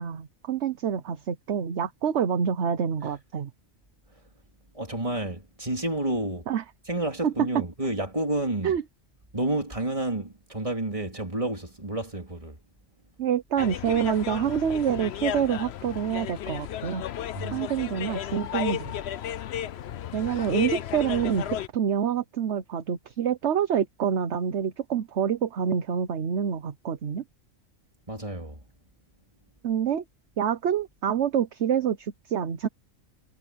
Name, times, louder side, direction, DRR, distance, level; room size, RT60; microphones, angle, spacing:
voice 1, 0.0-3.5 6.5-6.6 7.2-7.5 8.6-8.8 13.2-17.0 17.5-18.9 20.1-27.2 29.6-30.0 30.4-32.7, right 8 dB, 60° right, 1.2 m, -27 dB
voice 2, 4.7-6.5 6.9-8.8 9.3-12.6 17.3-17.7 28.1-28.6, right 1 dB, 25° right, 3.3 m, -30 dB
sound 1, 13.6-21.7, left 10 dB, 60° left, 0.8 m, -33 dB
omnidirectional pair, 1.4 m